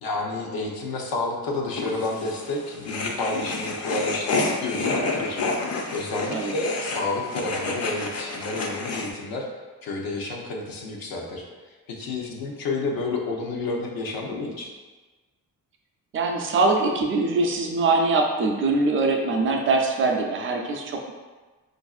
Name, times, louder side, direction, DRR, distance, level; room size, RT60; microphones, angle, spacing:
voice 1, 0.0-5.4 5.9-9.5 9.8-11.5 11.9-14.7, left 3 dB, 90° left, 0 dB, 0.7 m, -30 dB
sound 1, 1.7-9.1, left 3 dB, 45° left, 0.4 m, -29 dB
voice 2, 16.1-21.1, right 3 dB, 35° right, 2 dB, 0.4 m, -23 dB
4.8 x 2.5 x 2.3 m, 1.3 s
cardioid pair, 165°, 35 cm